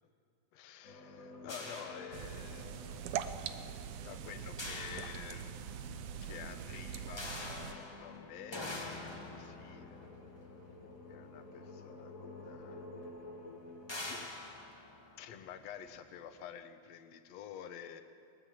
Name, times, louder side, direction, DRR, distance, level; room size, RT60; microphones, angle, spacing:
voice 1, 0.5-2.7 3.8-5.7 6.2-10.1 11.1-12.9 14.0-14.2 15.2-18.0, left 9 dB, 65° left, 8 dB, 2.1 m, -49 dB
sound 1, 0.8-14.3, left 3 dB, 35° left, 1.6 m, -52 dB
sound 2, 1.5-2.8 4.6-5.9 7.2-11.6 12.5-12.6 13.0-13.2 13.9-15.9, left 2 dB, 10° left, 1.2 m, -46 dB
sound 3, 2.1-7.7, right 8 dB, 80° right, 2.3 m, -43 dB
22.0 x 20.5 x 7.5 m, 2.5 s
omnidirectional pair, 3.6 m